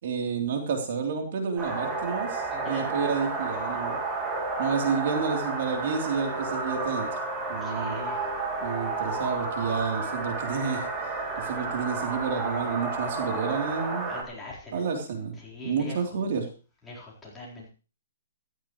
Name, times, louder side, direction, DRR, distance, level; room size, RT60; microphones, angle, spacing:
voice 1, 0.0-4.0 4.6-7.1 7.5-8.0 8.6-10.9 11.4-14.1 14.7-15.3 15.6-16.5, right 5 dB, 55° right, 3 dB, 3.4 m, -30 dB
sound 1, 1.6-14.2, right 3 dB, 15° right, 3.0 m, -31 dB
voice 2, 2.5-3.0 7.6-8.3 14.1-14.8 15.4-16.1 16.8-17.7, left 2 dB, 10° left, -5 dB, 4.2 m, -42 dB
15.0 x 13.5 x 3.2 m, 0.35 s
hypercardioid pair, 155°, 0 cm